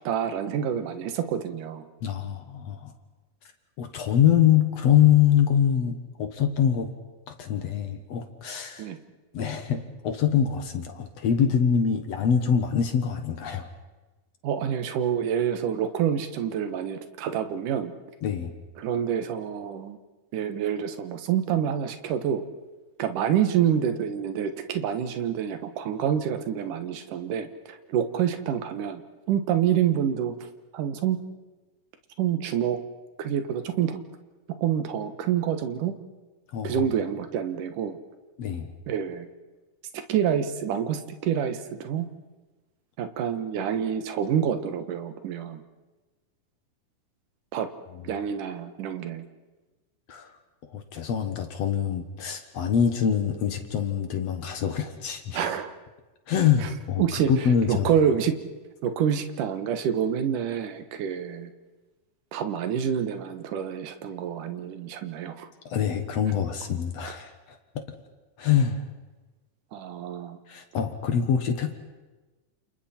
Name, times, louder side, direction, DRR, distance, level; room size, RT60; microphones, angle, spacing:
voice 1, 0.0-1.8 8.8-9.0 14.4-17.9 18.8-20.0 20.3-22.4 23.0-29.0 29.3-30.3 30.7-31.2 32.2-32.8 33.2-34.0 34.6-35.9 36.6-38.0 38.9-39.3 39.9-42.1 43.0-45.6 47.5-47.7 48.0-49.2 55.3-55.7 56.6-56.7 57.0-58.3 58.8-61.5 62.3-65.5 69.7-70.4, right 9 dB, 70° right, 8 dB, 2.8 m, -27 dB
voice 2, 2.0-2.9 3.8-6.9 7.3-8.9 9.3-13.7 18.2-18.5 36.5-36.8 38.4-38.7 50.1-50.3 50.7-55.4 56.3-57.9 65.7-67.8 68.4-68.8 70.5-71.7, left 8 dB, 60° left, 6 dB, 2.2 m, -24 dB
30.0 x 28.5 x 4.4 m, 1.2 s
omnidirectional pair, 3.9 m